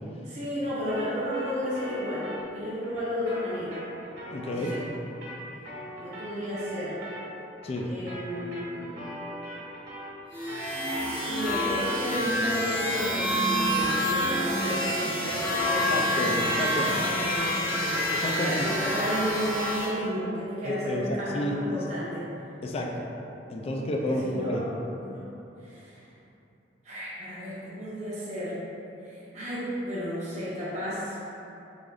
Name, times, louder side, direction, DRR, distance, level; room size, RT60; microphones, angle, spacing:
voice 1, 0.2-3.8 4.4-4.8 6.0-7.0 7.8-9.0 10.8-16.4 16.7-22.3 24.1-24.7 25.0-25.3 25.6-26.0 26.8-28.6 29.0-31.2, equal, 40° right, -10 dB, 0.7 m, -33 dB
sound 1, 0.9-10.2 10.5-19.8, equal, 60° right, 1.3 m, -41 dB
voice 2, 4.3-4.7 7.6-7.9 15.8-16.9 17.8-18.7 20.6-21.6 22.6-23.1 23.5-24.6, left 1 dB, 35° left, 0 dB, 0.3 m, -31 dB
sound 2, 10.3-19.9, equal, 10° left, 0.9 m, -28 dB
3.6 x 3.3 x 2.4 m, 2.9 s
head